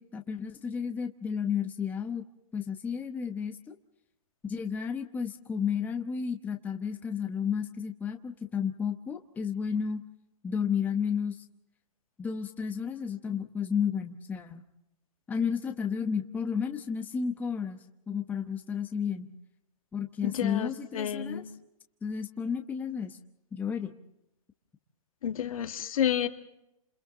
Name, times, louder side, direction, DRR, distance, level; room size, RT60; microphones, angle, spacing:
voice 1, 0.0-2.2 2.5-3.8 4.4-10.0 10.4-11.4 12.2-14.6 15.3-17.8 18.1-19.3 19.9-21.4 22.0-23.2 23.5-23.9, left 7 dB, 10° left, 5 dB, 0.9 m, -32 dB
voice 2, 20.2-21.5 25.2-26.3, left 9 dB, 70° left, 7 dB, 2.0 m, -30 dB
29.5 x 27.5 x 3.8 m, 0.83 s
hypercardioid pair, 155°, 19 cm